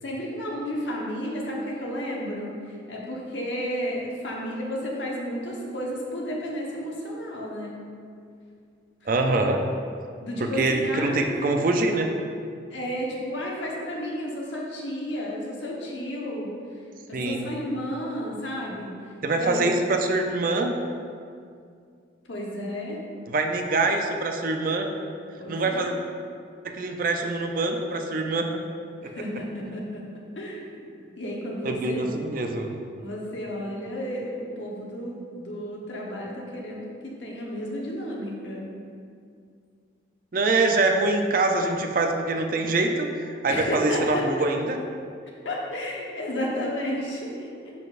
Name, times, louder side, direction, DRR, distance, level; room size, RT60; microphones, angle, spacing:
voice 1, 0.0-7.7 10.2-11.3 12.7-16.5 17.1-18.9 19.3-19.7 22.3-23.0 25.4-25.9 29.0-30.0 30.4-30.9 31.2-32.1 33.0-38.7 43.4-44.3 45.4-47.7, equal, 70° left, -3 dB, 1.1 m, -32 dB
voice 2, 9.1-9.6 10.4-12.1 17.1-17.5 19.2-20.7 23.3-24.9 25.5-25.9 26.6-28.6 29.0-29.1 31.6-32.8 40.3-44.8, right 2 dB, 45° right, 4 dB, 0.4 m, -24 dB
10.5 x 3.9 x 2.5 m, 2.3 s
head